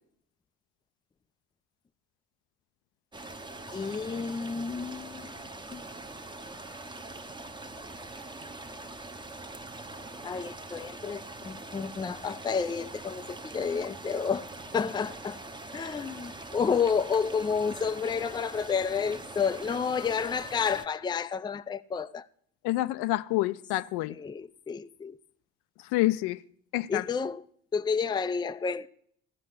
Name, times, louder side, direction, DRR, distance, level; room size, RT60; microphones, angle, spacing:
sound 1, 3.1-20.8, right 2 dB, 10° right, 0.9 m, -43 dB
voice 1, 3.7-5.3 5.7-5.8 10.2-14.5 14.7-15.4 15.7-22.3 24.1-25.2 26.9-27.4 27.7-28.9, left 6 dB, 10° left, 0.4 m, -30 dB
voice 2, 22.6-24.2 25.9-26.4 26.7-27.1, left 17 dB, 65° left, 0.6 m, -27 dB
14.0 x 5.4 x 7.9 m
hypercardioid pair, 55°, 42 cm